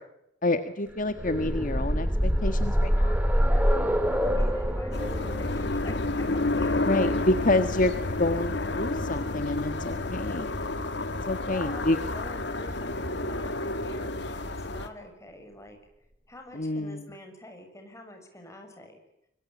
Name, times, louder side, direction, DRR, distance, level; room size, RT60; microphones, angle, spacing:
voice 1, 0.4-3.2 6.8-10.5 11.3-12.0 16.5-17.0, left 2 dB, 45° left, 8 dB, 1.7 m, -28 dB
sound 1, 1.0-8.8 9.9-10.0 10.4-10.5, equal, 10° right, 3.4 m, -26 dB
voice 2, 3.5-6.2 6.5-7.2 11.5-15.8 16.3-19.0, left 1 dB, 15° left, 4 dB, 6.9 m, -46 dB
sound 2, 4.9-14.9, left 2 dB, 70° left, 2.4 m, -30 dB
26.5 x 24.0 x 8.7 m, 0.81 s
head